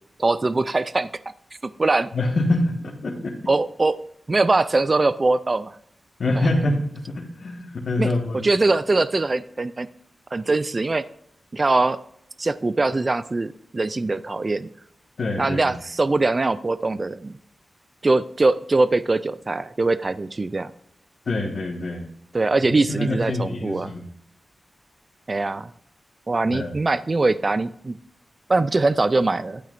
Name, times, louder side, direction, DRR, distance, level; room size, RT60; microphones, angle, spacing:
voice 1, 0.2-1.1 1.6-2.1 3.5-4.0 4.3-5.7 8.0-8.1 8.4-9.9 10.3-11.0 11.5-12.0 12.4-14.7 15.4-17.3 18.0-20.7 22.3-23.9 25.3-25.7 26.3-28.0 28.5-29.6, right 3 dB, 30° right, 15 dB, 0.4 m, -22 dB
voice 2, 2.1-3.4 6.2-8.4 15.2-15.8 21.2-22.0 22.9-24.1 26.5-26.7, left 2 dB, 55° left, -2 dB, 1.5 m, -25 dB
11.5 x 9.0 x 2.6 m, 0.71 s
wide cardioid pair, 140°, 0 cm